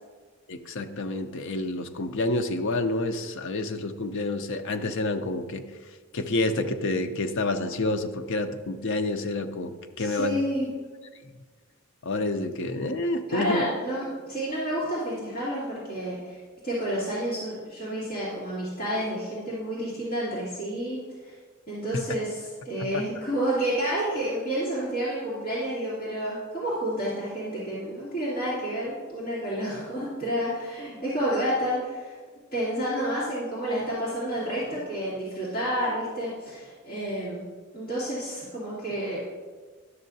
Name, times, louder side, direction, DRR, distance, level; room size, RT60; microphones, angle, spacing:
voice 1, 0.5-5.6 6.1-10.4 12.0-13.6, left 2 dB, 60° left, 7 dB, 0.5 m, -28 dB
voice 2, 10.0-10.7 13.3-16.4 16.6-21.3 21.7-32.1 32.5-37.4 37.7-39.2, right 1 dB, 45° left, -11 dB, 2.4 m, -30 dB
11.5 x 6.4 x 2.7 m, 1.5 s
head